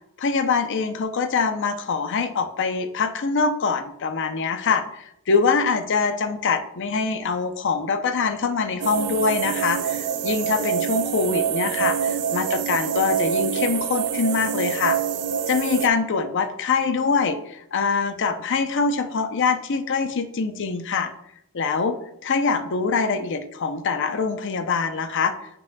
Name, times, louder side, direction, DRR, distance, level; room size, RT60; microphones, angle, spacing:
voice 1, 0.2-15.0 15.5-21.1 21.5-25.3, left 5 dB, 55° left, 8 dB, 0.6 m, -24 dB
sound 1, 8.8-15.9, right 8 dB, 85° right, 0.4 m, -26 dB
9.4 x 5.0 x 2.2 m, 0.78 s
head